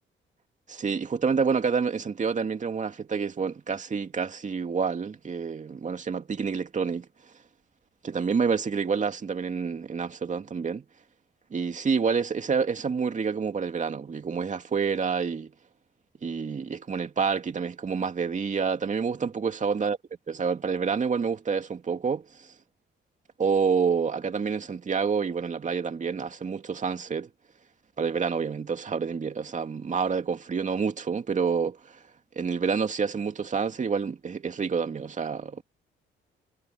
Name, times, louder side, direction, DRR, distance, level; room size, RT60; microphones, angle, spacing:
voice 1, 0.7-7.1 8.0-10.8 11.5-15.5 16.2-20.0 20.3-22.5 23.4-27.3 28.0-32.0 32.4-35.6, right 5 dB, 40° right, 2.5 m, -28 dB
cardioid pair, 90°, 20 cm